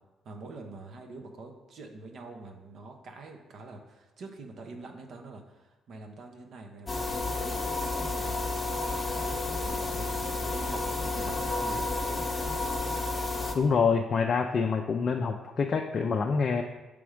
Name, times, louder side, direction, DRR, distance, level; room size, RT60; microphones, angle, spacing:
voice 1, 0.2-7.6 8.0-8.4 8.7-11.9, right 3 dB, 65° right, 3 dB, 0.8 m, -45 dB
sound 1, 6.9-13.5, left 2 dB, 25° left, 0.9 m, -31 dB
voice 2, 13.5-16.6, left 5 dB, 50° left, 2 dB, 0.4 m, -26 dB
6.0 x 3.5 x 4.9 m, 1.1 s
cardioid pair, 90°, 0 cm